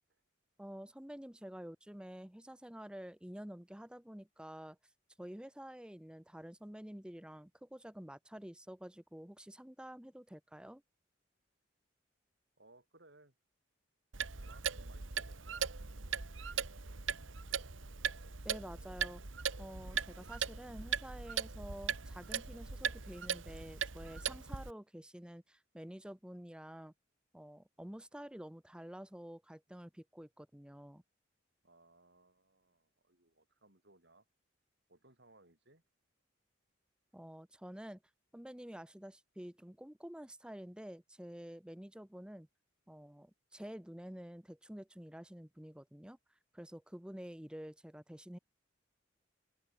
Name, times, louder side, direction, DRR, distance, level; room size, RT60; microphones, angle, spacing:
voice 1, 0.6-4.8 5.2-10.8 18.4-19.2 19.6-26.9 27.3-31.0 37.1-38.0 38.3-42.5 42.9-46.2 46.5-48.4, equal, 5° right, 0.7 m, -49 dB
voice 2, 12.6-13.3 14.4-15.7 31.6-34.2 34.9-35.8, right 2 dB, 60° right, 6.6 m, -64 dB
Clock, 14.1-24.7, right 7 dB, 80° right, 1.6 m, -39 dB
open air
head